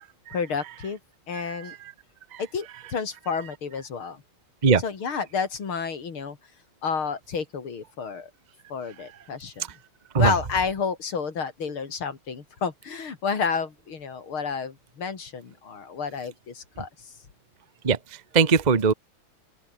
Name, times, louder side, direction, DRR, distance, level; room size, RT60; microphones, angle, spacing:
voice 1, 0.3-1.0 1.3-1.8 2.4-4.2 4.8-6.4 6.8-8.3 8.7-9.7 10.2-16.9, left 5 dB, 75° left, 3.6 m, -30 dB
voice 2, 1.3-1.9 2.3-2.4 4.6-4.8 10.1-10.3 17.8-18.9, right 5 dB, 25° right, 1.1 m, -22 dB
open air
omnidirectional pair, 2.3 m